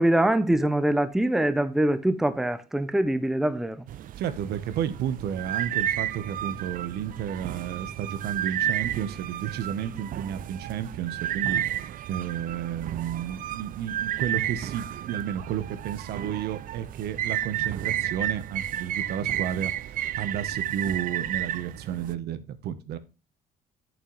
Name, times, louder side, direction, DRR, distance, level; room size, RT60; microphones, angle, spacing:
voice 1, 0.0-3.8, right 1 dB, ahead, 0.6 m, -23 dB
sound 1, 3.9-22.1, right 12 dB, 55° right, 0.5 m, -32 dB
voice 2, 4.2-11.6 12.1-23.0, right 9 dB, 75° right, 1.0 m, -32 dB
8.4 x 7.6 x 3.1 m
cardioid pair, 110°, 17 cm